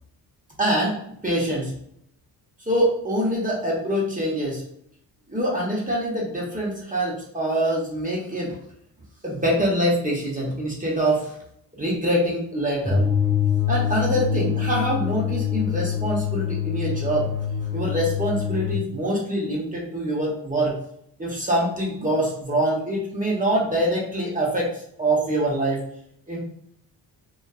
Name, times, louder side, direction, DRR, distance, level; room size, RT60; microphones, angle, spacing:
voice 1, 0.6-1.0 1.2-1.7 2.7-4.6 5.3-8.6 9.2-11.3 11.7-13.0 13.7-17.3 17.7-20.7 21.2-24.7 25.0-25.8 26.3-26.4, right 1 dB, 20° right, -4 dB, 0.9 m, -24 dB
sound 1, 12.8-18.8, left 8 dB, ahead, 0.3 m, -25 dB
2.5 x 2.4 x 2.3 m, 0.70 s
cardioid pair, 85°, 43 cm